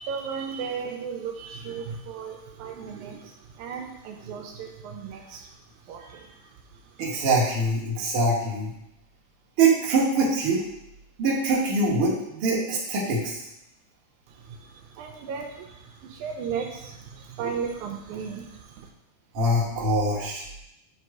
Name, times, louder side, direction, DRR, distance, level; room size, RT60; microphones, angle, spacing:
voice 1, 0.0-7.0 14.3-18.9, right 6 dB, 90° right, 2 dB, 1.7 m, -36 dB
voice 2, 7.0-8.7 9.6-10.6 11.2-13.4 19.3-20.4, right 2 dB, 60° right, -5 dB, 1.4 m, -23 dB
8.0 x 3.0 x 4.6 m, 0.84 s
omnidirectional pair, 4.0 m